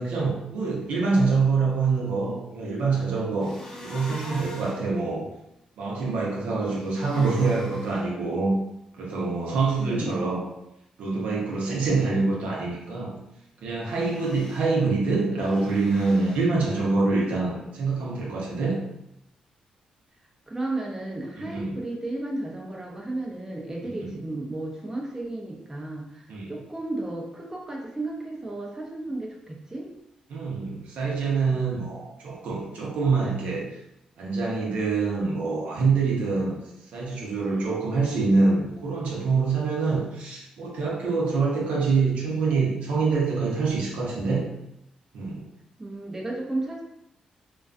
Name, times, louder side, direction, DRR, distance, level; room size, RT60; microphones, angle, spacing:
voice 1, 0.0-3.6 3.8-5.3 5.8-8.5 9.0-10.5 11.0-13.1 13.6-18.8 21.4-21.8 23.8-24.2 26.3-26.5 30.3-33.7 34.2-36.6 36.9-44.5 45.1-45.4, right 4 dB, 80° right, -3 dB, 0.6 m, -25 dB
sound 1, 3.4-4.8 6.6-8.0 13.9-14.7 15.4-16.4, left 1 dB, 20° left, 0.7 m, -42 dB
voice 2, 9.8-10.2 20.5-29.9 45.8-46.8, right 2 dB, 20° right, -1 dB, 0.5 m, -33 dB
2.3 x 2.3 x 2.4 m, 0.83 s
cardioid pair, 70°, 2 cm